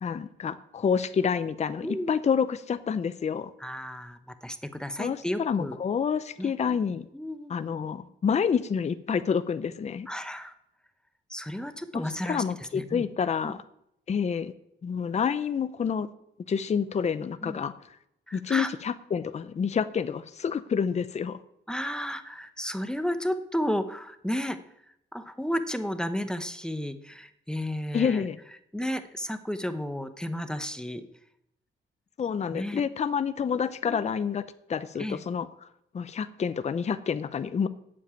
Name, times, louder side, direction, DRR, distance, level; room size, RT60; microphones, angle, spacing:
voice 1, 0.0-3.5 5.0-7.1 7.5-10.1 11.9-13.6 14.1-14.5 14.8-16.1 16.5-17.7 18.3-21.4 27.9-28.4 32.2-34.4 34.7-35.5 35.9-37.7, left 6 dB, 35° left, 12 dB, 0.6 m, -28 dB
voice 2, 3.6-5.8 6.4-6.5 7.1-7.5 10.1-10.5 11.3-13.0 13.4-13.5 17.4-17.6 18.3-18.7 21.7-24.6 25.1-28.3 28.7-31.0 32.5-32.8 33.9-34.0 35.0-35.2, equal, 5° left, 9 dB, 0.8 m, -32 dB
8.5 x 7.3 x 8.9 m, 0.77 s
cardioid pair, 125°, 20 cm